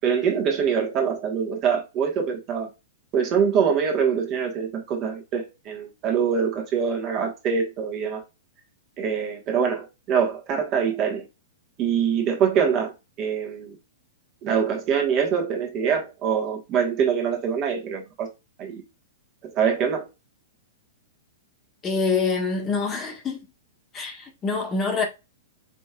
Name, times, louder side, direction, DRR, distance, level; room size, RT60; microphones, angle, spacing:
voice 1, 0.0-2.7 3.1-8.2 9.0-11.3 11.8-12.9 13.2-13.8 14.4-18.3 18.6-18.8 19.5-20.0, right 7 dB, 35° right, 1.4 m, -24 dB
voice 2, 21.8-23.4 23.9-25.0, left 4 dB, 25° left, 1.4 m, -25 dB
5.2 x 3.1 x 2.4 m
hypercardioid pair, 115°, 0 cm